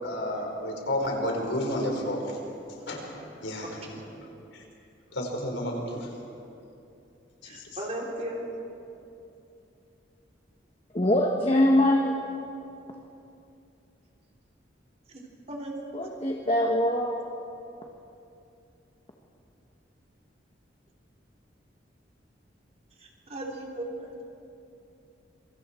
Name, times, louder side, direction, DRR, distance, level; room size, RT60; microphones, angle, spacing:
voice 1, 0.0-2.4 2.7-3.1 3.4-4.6 5.1-6.1 7.4-7.8, left 1 dB, 85° left, 0 dB, 4.5 m, -32 dB
voice 2, 7.4-8.4 15.1-15.9 23.0-24.2, right 1 dB, 35° right, -1 dB, 3.6 m, -37 dB
voice 3, 10.9-12.2 15.9-17.2, left 1 dB, 30° left, 1 dB, 1.4 m, -23 dB
27.5 x 24.0 x 4.5 m, 2.8 s
head